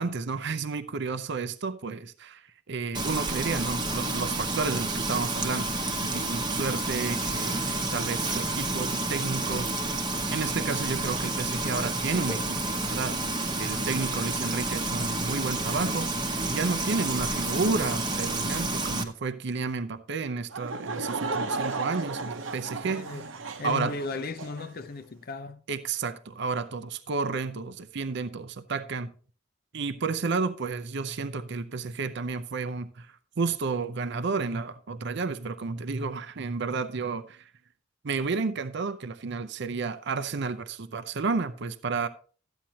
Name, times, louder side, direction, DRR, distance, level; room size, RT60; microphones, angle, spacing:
voice 1, 0.0-9.7 10.3-23.3 23.6-24.0 25.7-29.1 29.7-37.5 38.0-42.1, right 4 dB, 60° right, 0.6 m, -31 dB
Frying (food), 2.9-19.0, right 2 dB, 20° right, 1.0 m, -30 dB
Laughter / Crowd, 20.5-24.7, right 3 dB, 80° right, 1.0 m, -34 dB
voice 2, 22.8-23.3 23.6-25.6, left 3 dB, 50° left, 0.6 m, -36 dB
13.0 x 8.9 x 2.9 m
head